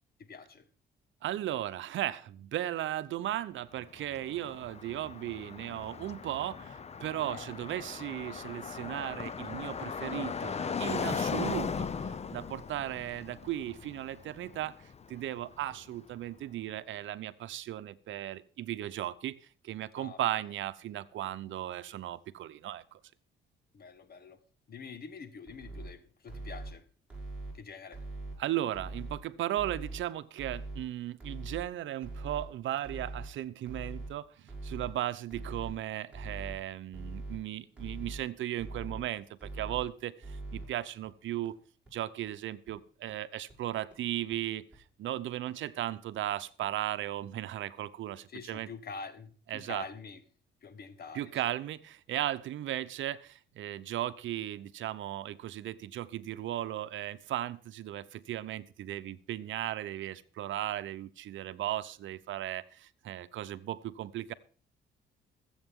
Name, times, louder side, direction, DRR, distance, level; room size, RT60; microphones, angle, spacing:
voice 1, 0.2-0.6 7.3-7.5 20.0-20.2 23.7-24.4 24.7-26.8 27.5-28.0 48.3-50.2 50.6-51.3, left 5 dB, 50° left, 1.7 m, -45 dB
voice 2, 1.2-19.3 19.6-23.0 28.4-41.6 41.9-44.6 45.0-48.7 49.5-49.9 51.1-64.3, right 13 dB, 75° right, 0.8 m, -36 dB
Car passing by, 3.8-15.8, left 6 dB, 35° left, 0.7 m, -38 dB
sound 1, 25.5-25.9 26.3-26.7 27.1-27.5 27.9-28.3 28.7-29.2 29.6-30.0 30.4-30.8 31.2-31.6 32.0-32.4 32.8-33.3 33.7-34.1 34.5-34.9 35.3-35.7 36.1-36.6 36.9-37.4 37.8-38.2 38.6-39.0 39.4-39.8 40.2-40.6 41.0-41.1 41.5-41.6 41.9-42.0 42.3-42.4 42.7-42.8 43.1-43.2 43.5-43.6 43.9-44.0 44.3-44.4 44.7-44.8, right 2 dB, 5° right, 7.2 m, -41 dB
22.5 x 8.1 x 3.7 m
cardioid pair, 90°, 20 cm